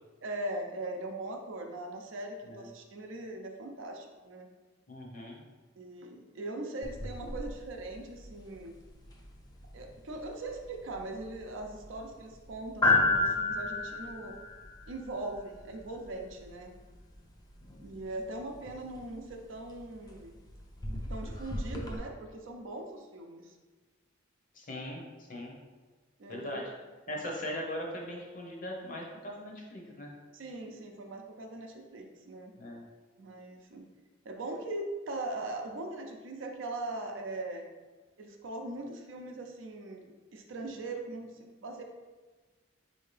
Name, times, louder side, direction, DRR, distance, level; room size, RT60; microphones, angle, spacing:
voice 1, 0.2-4.5 5.8-8.8 9.7-14.3 14.9-16.7 17.8-20.3 21.1-23.6 26.2-26.7 27.1-27.3 30.3-32.6 33.2-33.9 34.2-37.7 38.2-41.8, right 2 dB, 75° right, 3 dB, 0.5 m, -40 dB
voice 2, 4.9-5.4 24.5-25.6 26.3-26.6 27.1-30.1 32.6-32.8, left 1 dB, 45° left, -1 dB, 0.8 m, -40 dB
sound 1, 6.8-22.0, left 2 dB, 20° left, 0.4 m, -35 dB
4.3 x 2.7 x 3.2 m, 1.3 s
head